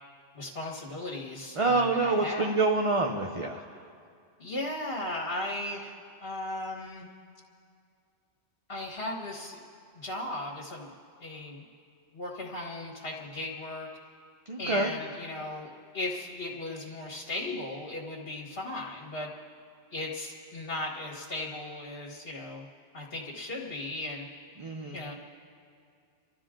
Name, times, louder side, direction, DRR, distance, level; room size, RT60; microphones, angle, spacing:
voice 1, 0.3-2.6 4.4-5.9 6.2-7.1 8.7-9.6 9.9-10.9 11.2-11.7 12.1-13.9 14.6-19.3 19.9-22.7 22.9-24.3 24.9-25.1, left 2 dB, 55° left, -4 dB, 1.9 m, -36 dB
voice 2, 1.6-3.6 14.5-14.9 24.6-25.0, right 3 dB, 30° right, 1 dB, 0.8 m, -26 dB
29.5 x 12.5 x 3.8 m, 2.4 s
omnidirectional pair, 1.2 m